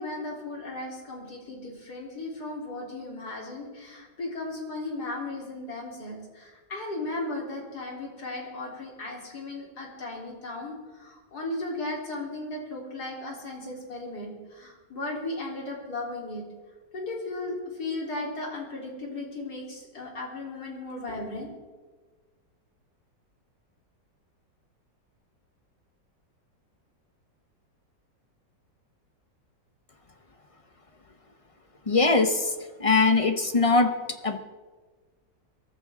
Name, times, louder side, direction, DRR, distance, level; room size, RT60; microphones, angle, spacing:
voice 1, 0.0-16.4 16.9-21.5, left 2 dB, 60° left, -2 dB, 4.1 m, -36 dB
voice 2, 31.9-34.4, left 3 dB, 35° left, 7 dB, 0.5 m, -22 dB
22.5 x 14.5 x 3.7 m, 1.4 s
omnidirectional pair, 1.9 m